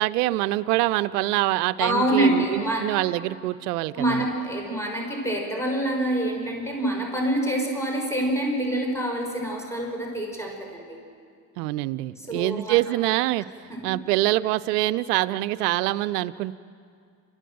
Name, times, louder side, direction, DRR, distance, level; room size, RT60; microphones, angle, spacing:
voice 1, 0.0-4.3 11.6-13.5 13.8-16.5, right 17 dB, 85° right, 15 dB, 0.6 m, -25 dB
voice 2, 1.8-2.9 3.9-11.0 12.2-12.8 13.7-13.9, right 1 dB, 5° left, 0 dB, 6.0 m, -26 dB
28.0 x 14.5 x 7.8 m, 2.2 s
hypercardioid pair, 60°, 46 cm